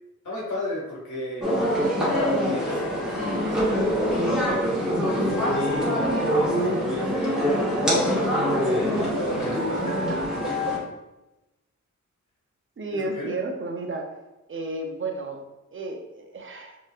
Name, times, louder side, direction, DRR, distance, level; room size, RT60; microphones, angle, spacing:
voice 1, 0.2-1.5 2.0-4.3 5.0-7.4 7.9-9.9 12.9-13.3, left 2 dB, 75° left, -4 dB, 1.3 m, -33 dB
sound 1, 1.4-10.8, equal, ahead, 1.5 m, -24 dB
voice 2, 9.8-10.2 12.8-14.2 14.5-16.8, right 2 dB, 45° right, 3 dB, 0.6 m, -33 dB
4.3 x 3.1 x 2.4 m, 1.0 s
wide cardioid pair, 95°, 30 cm